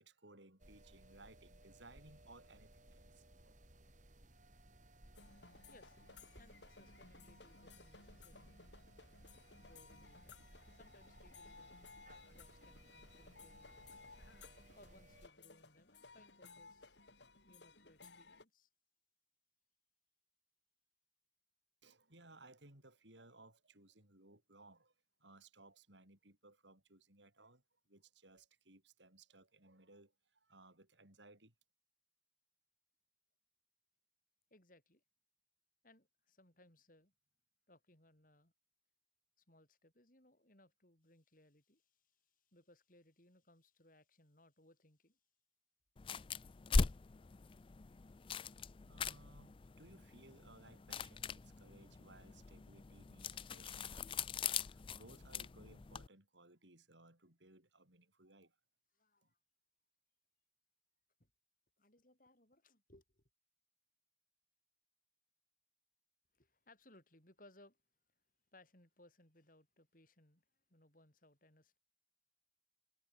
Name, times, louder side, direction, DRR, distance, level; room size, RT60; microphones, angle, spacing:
voice 1, 0.0-3.5 21.8-24.9 25.2-31.5 48.8-58.6, right 2 dB, 80° right, 8.0 m, -62 dB
sound 1, 0.6-15.3, right 1 dB, 45° right, 3.4 m, -62 dB
sound 2, 5.1-18.4, left 4 dB, 75° left, 6.4 m, -60 dB
voice 2, 6.3-8.7 9.6-10.4 10.7-11.8 12.3-14.3 14.7-17.0 17.4-18.7 34.5-35.0 35.8-37.1 37.7-38.5 39.4-45.2 58.9-59.4 61.2-61.3 61.8-63.2 66.3-67.8 68.5-71.8, left 1 dB, 50° left, 6.7 m, -67 dB
sound 3, 46.0-56.1, left 4 dB, 30° left, 0.4 m, -41 dB
head